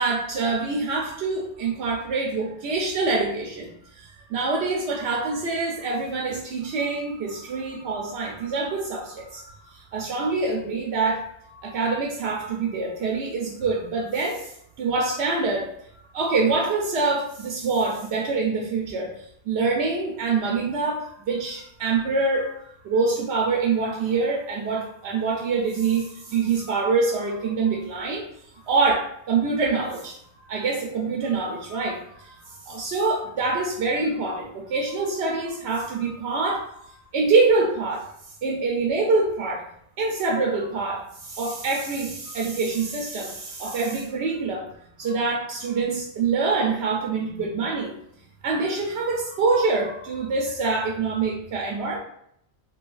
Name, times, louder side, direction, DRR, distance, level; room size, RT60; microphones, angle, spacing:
voice 1, 0.0-14.5 14.8-15.7 16.1-19.1 19.5-22.6 22.8-28.2 28.6-38.1 38.4-39.6 40.0-44.7 45.0-47.9 48.4-52.0, right 4 dB, 80° right, -1 dB, 0.9 m, -25 dB
3.8 x 2.7 x 2.4 m, 0.71 s
omnidirectional pair, 1.1 m